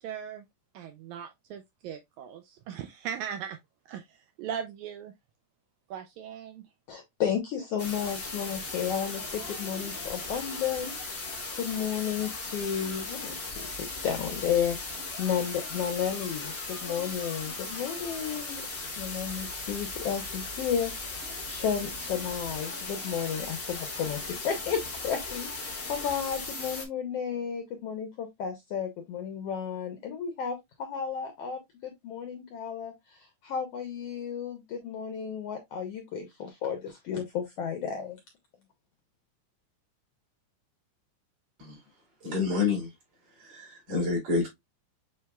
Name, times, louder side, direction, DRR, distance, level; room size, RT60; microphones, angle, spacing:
voice 1, 0.0-0.4 0.7-3.6 3.9-5.1 5.9-6.6, right 8 dB, 80° right, 1.8 m, -39 dB
voice 2, 6.9-10.9 11.2-18.6 18.9-38.2, left 8 dB, 75° left, 1.4 m, -33 dB
sound 1, 7.8-26.9, left 3 dB, 55° left, 0.6 m, -37 dB
voice 3, 42.2-42.9 43.4-44.5, left 4 dB, 50° right, 3.7 m, -28 dB
7.1 x 3.2 x 2.2 m
omnidirectional pair, 3.6 m